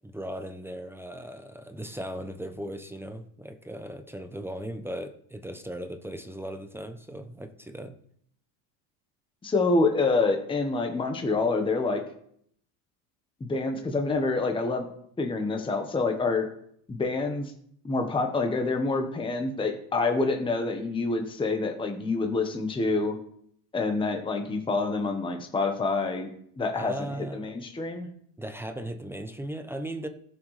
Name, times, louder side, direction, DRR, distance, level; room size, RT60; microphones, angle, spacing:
voice 1, 0.0-7.9 26.8-27.5 28.4-30.1, right 1 dB, 5° right, 7 dB, 0.5 m, -37 dB
voice 2, 9.4-12.0 13.4-14.9 15.2-16.5 16.9-17.5 17.8-23.2 23.7-26.3 26.6-28.1, left 3 dB, 10° left, 4 dB, 1.0 m, -27 dB
18.5 x 6.4 x 3.2 m, 0.66 s
cardioid pair, 140°, 46 cm